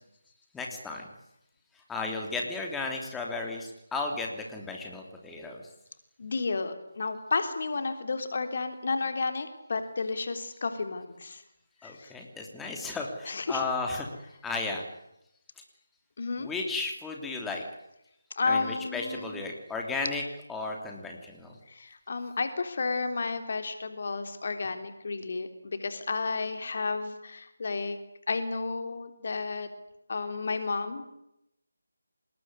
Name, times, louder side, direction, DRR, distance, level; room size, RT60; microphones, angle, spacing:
voice 1, 0.5-1.0 1.9-5.6 11.8-14.1 14.4-14.8 16.4-17.6 18.4-21.6, left 3 dB, 5° left, 1 dB, 3.2 m, -34 dB
voice 2, 6.2-11.4 11.8-12.1 13.3-13.6 16.2-16.5 18.4-19.4 21.7-28.0 28.3-29.7 30.1-31.0, left 4 dB, 45° left, 8 dB, 3.5 m, -32 dB
27.0 x 20.5 x 9.8 m, 0.83 s
figure-of-eight pair, 155°, 0 cm